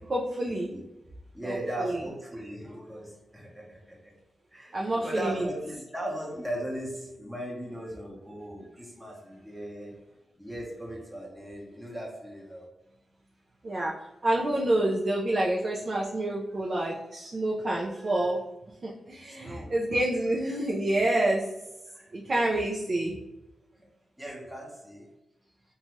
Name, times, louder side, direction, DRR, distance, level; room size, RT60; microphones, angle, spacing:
voice 1, 0.1-0.7 1.4-2.0 4.7-5.5 13.6-13.9 14.2-18.4 18.8-21.5 22.1-23.1, right 1 dB, 45° right, -2 dB, 0.4 m, -28 dB
voice 2, 1.3-4.0 4.5-9.9 10.4-12.7 19.3-19.7 21.9-22.6 24.2-25.0, right 1 dB, 5° right, -3 dB, 0.9 m, -38 dB
2.7 x 2.3 x 3.0 m, 0.97 s
cardioid pair, 70°, 0 cm